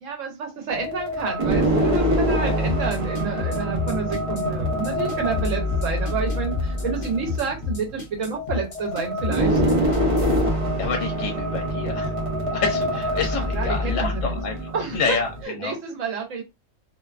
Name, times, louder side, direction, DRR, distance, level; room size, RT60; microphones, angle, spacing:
voice 1, 0.0-9.6 13.4-14.4 14.7-16.4, right 5 dB, 75° right, 3 dB, 1.0 m, -29 dB
sound 1, 0.7-15.4, equal, 45° right, 0.4 m, -25 dB
sound 2, 2.7-10.4, left 6 dB, 45° left, 0.6 m, -30 dB
voice 2, 10.8-12.1 12.5-15.3 15.6-15.7, left 5 dB, 75° left, 3 dB, 0.9 m, -28 dB
2.6 x 2.2 x 2.3 m, 0.23 s
omnidirectional pair, 1.3 m